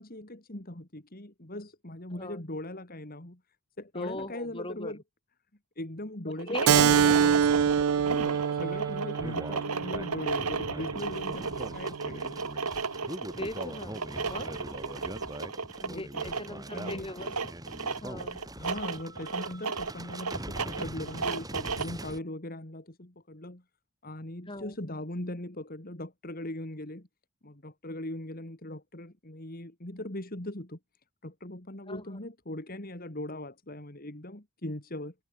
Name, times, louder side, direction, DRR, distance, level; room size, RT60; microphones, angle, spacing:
voice 1, 0.0-3.4 3.8-5.0 5.8-7.5 8.0-12.4 15.8-17.2 18.6-23.6 24.0-27.1 27.4-30.8 31.2-35.1, left 1 dB, 40° left, 2.6 m, -40 dB
voice 2, 3.9-4.9 6.4-7.5 13.4-14.5 15.8-17.3 18.0-18.4 24.5-24.8 31.9-32.0, left 1 dB, 25° left, 4.3 m, -39 dB
sound 1, 6.3-22.0, right 4 dB, 90° right, 2.3 m, -35 dB
Keyboard (musical), 6.7-11.8, right 8 dB, 75° right, 0.4 m, -26 dB
sound 2, 6.8-22.2, right 1 dB, 15° right, 6.3 m, -42 dB
head